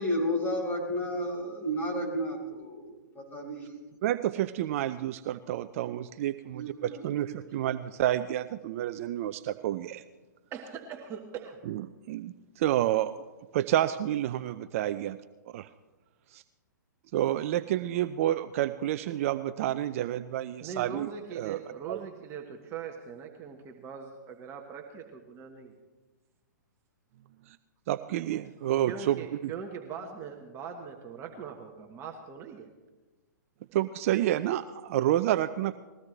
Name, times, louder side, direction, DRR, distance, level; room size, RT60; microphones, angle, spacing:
voice 1, 0.0-3.6 6.5-7.4, equal, 20° left, 0 dB, 4.8 m, -32 dB
voice 2, 4.0-10.0 11.7-11.8 12.1-13.1 13.5-15.2 15.5-15.7 16.3-16.4 17.1-21.1 21.4-21.6 21.9-22.0 27.5-27.6 27.9-29.5 33.7-35.8, right 13 dB, 45° right, 13 dB, 0.5 m, -29 dB
voice 3, 10.5-11.6 20.6-25.7 28.9-32.7, right 6 dB, 25° right, 3 dB, 1.4 m, -41 dB
20.5 x 16.5 x 3.3 m, 1.2 s
hypercardioid pair, 120°, 10 cm